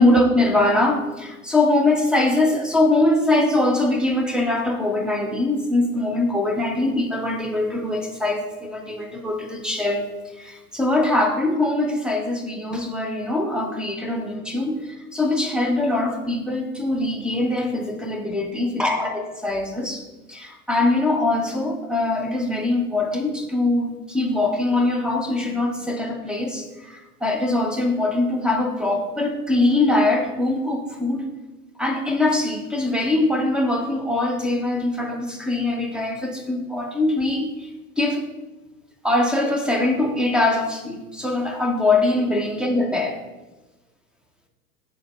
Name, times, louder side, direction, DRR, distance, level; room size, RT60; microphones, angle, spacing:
voice 1, 0.0-10.1 10.4-20.0 20.3-31.3 31.8-37.5 38.0-38.2 39.0-43.2, left 2 dB, ahead, 3 dB, 0.7 m, -22 dB
8.9 x 3.6 x 4.1 m, 1.1 s
figure-of-eight pair, 90°, 47 cm